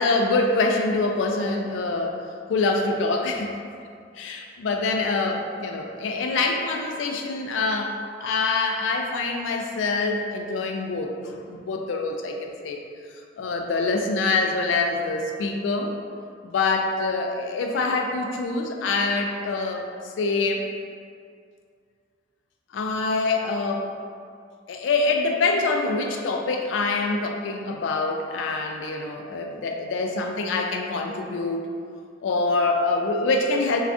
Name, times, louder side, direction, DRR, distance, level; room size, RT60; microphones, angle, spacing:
voice 1, 0.0-2.2 2.5-3.6 4.1-7.9 8.2-12.8 13.4-15.9 16.4-19.8 20.2-20.7 22.7-23.9 24.7-31.7 32.2-33.8, left 3 dB, 80° left, 2 dB, 0.3 m, -25 dB
2.5 x 2.3 x 3.4 m, 2.2 s
head